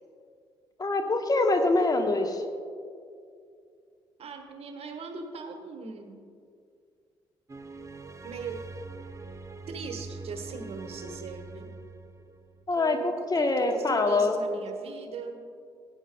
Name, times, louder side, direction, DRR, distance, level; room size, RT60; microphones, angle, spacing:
voice 1, 0.8-2.4 12.7-14.4, left 2 dB, 30° left, 5 dB, 1.1 m, -25 dB
voice 2, 4.2-6.2 8.2-8.6 9.7-11.7 12.8-15.4, right 4 dB, 50° right, 5 dB, 1.2 m, -39 dB
sound 1, 7.5-12.7, right 3 dB, 25° right, 0.7 m, -43 dB
17.0 x 9.1 x 2.3 m, 2.3 s
figure-of-eight pair, 45°, 13 cm